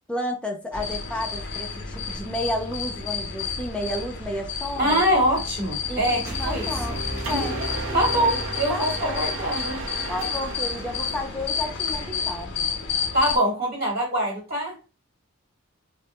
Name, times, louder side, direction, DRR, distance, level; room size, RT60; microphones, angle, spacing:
voice 1, 0.1-5.0 5.9-8.3 8.7-9.3 10.1-12.5, left 1 dB, 5° left, 0.4 m, -32 dB
sound 1, 0.7-13.4, left 5 dB, 60° left, 0.5 m, -31 dB
voice 2, 4.7-7.0 7.9-9.8 13.1-14.8, equal, 45° right, 1.3 m, -24 dB
sound 2, 6.3-9.3, equal, 15° right, 1.0 m, -34 dB
Mechanisms, 7.2-12.3, right 3 dB, 65° right, 0.5 m, -35 dB
2.2 x 2.1 x 2.9 m
head